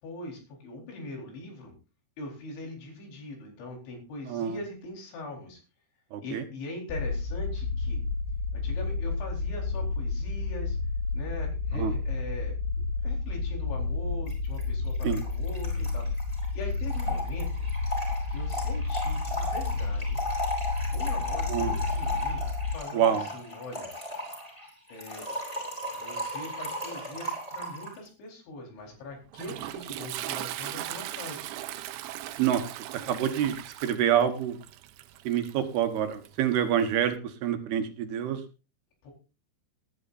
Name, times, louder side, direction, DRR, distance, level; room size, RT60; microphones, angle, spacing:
voice 1, 0.0-1.7 2.2-5.6 6.2-8.0 8.5-10.8 11.1-12.5 13.0-16.1 16.5-17.5 18.3-20.2 20.9-22.5 22.7-23.9 24.9-25.3 25.9-31.4 39.0-39.1, left 2 dB, 85° left, 1 dB, 6.6 m, -41 dB
voice 2, 4.3-4.6 6.1-6.4 11.7-11.9 15.0-15.2 21.5-21.8 22.9-23.3 32.4-32.6 33.1-34.6 35.2-38.4, right 9 dB, 70° right, 7 dB, 2.9 m, -27 dB
sound 1, 6.9-22.7, left 3 dB, 65° left, 3.7 m, -31 dB
Trickle dribble / Fill (with liquid), 14.3-14.4 14.6-14.7 14.9-28.0, left 1 dB, 10° left, 5.3 m, -35 dB
Toilet flush, 28.8-37.2, right 14 dB, 85° right, 3.1 m, -39 dB
19.5 x 11.0 x 2.6 m, 0.31 s
omnidirectional pair, 5.1 m